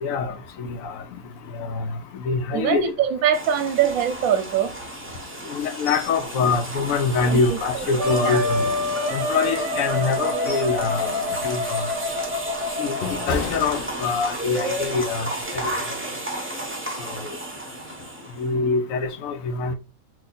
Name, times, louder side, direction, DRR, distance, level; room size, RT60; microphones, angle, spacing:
voice 1, 0.0-1.0 1.6-1.9 2.2-2.8 5.5-8.6 9.1-11.9 12.8-12.9 13.3-15.3 15.5-15.6 18.4-19.7, left 4 dB, 75° left, 1.0 m, -24 dB
voice 2, 2.5-4.7 7.3-7.9 8.2-8.4, right 9 dB, 80° right, 1.0 m, -23 dB
sound 1, 3.3-18.5, right 1 dB, 15° right, 0.6 m, -32 dB
sound 2, 5.9-6.2 6.5-6.6 7.1-7.9 8.4-9.5 10.0-10.8 11.2-11.5 12.0-14.5 14.9-15.1, left 4 dB, 55° left, 0.7 m, -35 dB
Wind instrument woodwind instrument, 8.0-13.5, left 2 dB, 60° right, 0.9 m, -27 dB
2.7 x 2.6 x 3.8 m
omnidirectional pair, 1.4 m